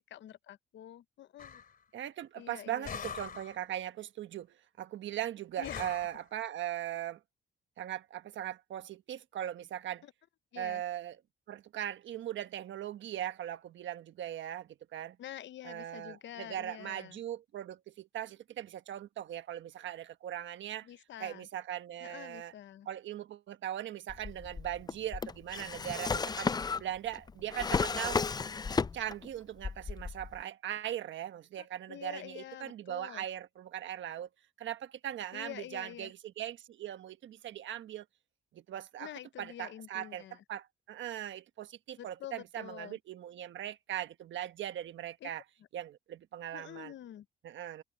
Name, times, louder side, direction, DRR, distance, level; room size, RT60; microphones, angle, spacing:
voice 1, 0.1-1.6 2.4-3.1 5.6-6.0 10.0-10.1 10.5-10.8 15.2-17.2 20.8-21.5 22.0-22.9 31.6-33.2 35.3-36.1 39.0-40.4 42.0-43.0 45.2-45.3 46.5-47.3, left 11 dB, 65° left, 0.9 m, -47 dB
sound 1, 1.4-1.7 2.8-3.6 5.6-6.2, left 7 dB, 45° left, 2.9 m, -42 dB
voice 2, 1.9-4.5 4.8-7.2 7.8-10.0 10.5-11.2 11.5-15.2 15.6-20.9 21.2-22.5 22.8-26.5 26.8-28.2 28.9-34.3 34.6-38.0 38.5-39.1 39.4-40.2 40.5-45.4 45.7-46.9 47.4-47.8, right 11 dB, 70° right, 1.3 m, -39 dB
Drawer open or close, 24.1-29.3 29.6-30.4, left 5 dB, 20° left, 0.4 m, -34 dB
cardioid pair, 90°, 20 cm